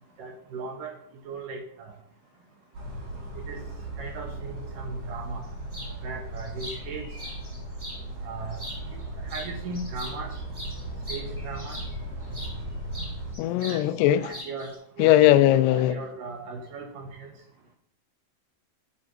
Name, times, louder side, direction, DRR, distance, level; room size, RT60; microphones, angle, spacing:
voice 1, 0.2-0.9 1.3-1.9 3.4-3.6 4.0-5.4 6.0-7.1 8.2-8.6 8.9-10.3 11.1-11.8 13.7-13.8 14.2-14.7 15.0-15.2 15.7-17.3, right 4 dB, 75° right, 2.2 m, -37 dB
sound 1, 2.7-13.3, right 1 dB, 50° right, 5.7 m, -37 dB
sound 2, 5.7-5.9 6.4-8.0 8.5-9.0 9.3-12.6 12.9-13.8 14.1-14.7, equal, 30° right, 0.4 m, -41 dB
voice 2, 13.4-14.3 15.0-16.0, left 13 dB, 90° left, 2.6 m, -19 dB
8.5 x 5.0 x 6.3 m
omnidirectional pair, 4.7 m